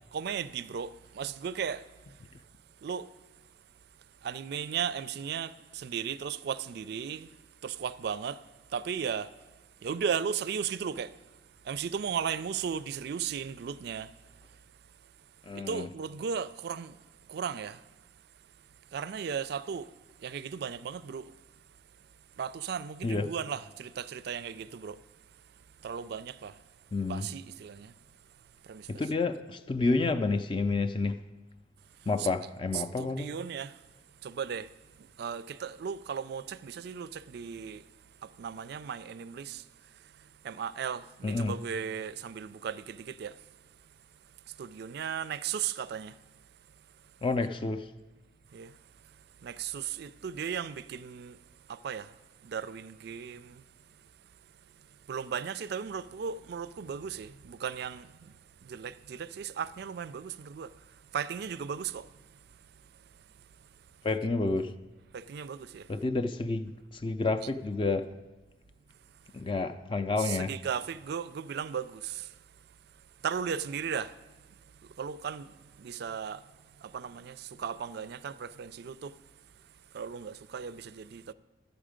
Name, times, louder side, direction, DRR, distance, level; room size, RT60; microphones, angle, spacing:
voice 1, 0.1-1.8 2.8-3.1 4.2-7.3 7.6-8.4 8.7-9.3 9.8-11.1 11.7-14.1 15.7-17.0 17.3-17.8 18.9-19.9 20.2-21.2 22.4-25.0 25.8-26.5 27.1-27.9 28.7-28.9 32.2-32.3 32.7-33.7 34.2-34.7 35.2-37.8 38.2-39.6 40.4-43.3 44.6-46.1 48.5-48.7 49.4-51.4 51.7-52.1 52.4-53.6 55.1-58.3 58.6-60.7 61.1-62.1 65.1-65.9 70.2-72.3 73.2-74.1 75.0-75.5 75.8-76.4 76.8-79.1 79.9-81.3, right 7 dB, 60° right, 0.3 m, -36 dB
voice 2, 15.4-15.9 23.0-23.3 26.9-27.3 28.9-31.2 32.1-33.4 41.2-41.5 47.2-47.9 64.0-64.7 65.9-68.1 69.3-70.5, left 3 dB, 25° left, 0.4 m, -30 dB
12.0 x 8.0 x 5.0 m
head